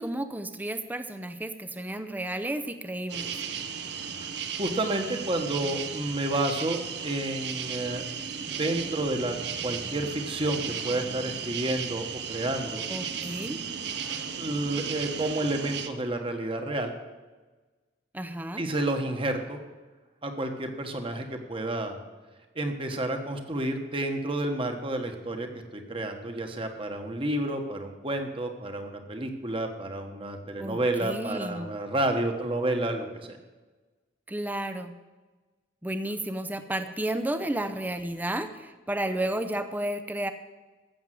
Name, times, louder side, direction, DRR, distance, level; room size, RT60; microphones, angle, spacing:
voice 1, 0.0-3.3 12.9-13.6 18.1-18.6 30.6-31.7 34.3-34.9 35.8-40.3, right 1 dB, 10° right, 10 dB, 0.6 m, -32 dB
sound 1, 3.1-15.9, right 7 dB, 65° right, 0.9 m, -35 dB
voice 2, 4.6-8.1 8.5-9.4 9.6-12.9 14.4-16.9 18.6-19.6 20.2-22.0 22.5-25.5 25.7-33.4, right 1 dB, 30° right, 5 dB, 1.3 m, -30 dB
14.0 x 7.2 x 7.7 m, 1.3 s
head